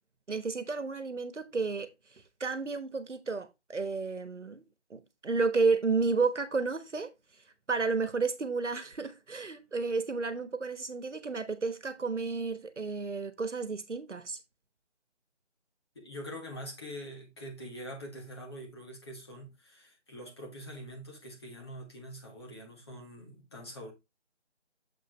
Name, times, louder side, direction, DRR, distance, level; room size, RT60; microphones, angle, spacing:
voice 1, 0.3-4.6 4.9-7.1 7.7-14.4, right 4 dB, 85° right, 1.2 m, -32 dB
voice 2, 15.9-23.9, equal, 20° left, 1.7 m, -44 dB
7.2 x 5.6 x 3.2 m
figure-of-eight pair, 165°, 35 cm